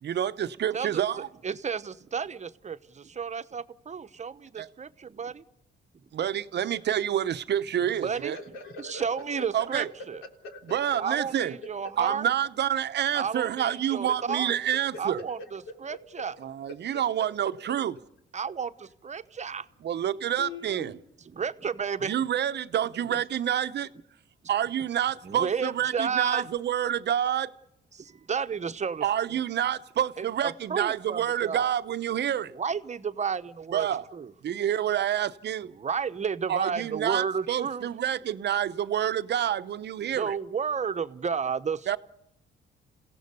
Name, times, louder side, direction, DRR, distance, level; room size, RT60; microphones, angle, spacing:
voice 1, 0.0-1.3 4.6-4.7 6.1-8.4 9.5-9.9 10.7-11.5 12.0-15.2 16.4-17.9 19.8-21.0 22.0-23.9 24.5-27.5 29.0-32.5 33.7-34.1 34.4-35.7 36.5-40.3 41.9-42.0, right 10 dB, 60° right, 0.9 m, -28 dB
voice 2, 1.4-5.4 8.0-8.3 8.8-10.2 11.0-12.3 13.1-14.5 15.0-16.3 18.3-19.7 21.3-22.2 25.2-26.5 27.9-29.4 30.2-31.7 32.5-34.3 35.8-37.9 40.2-42.0, right 6 dB, 35° right, 1.0 m, -32 dB
voice 3, 7.9-10.6 10.9-11.0 14.5-14.8 15.4-15.5 15.9-16.0 16.7-17.0 17.4-17.5 20.4-21.0, left 2 dB, 90° left, 3.6 m, -43 dB
28.0 x 16.5 x 6.9 m
cardioid pair, 90°, 20 cm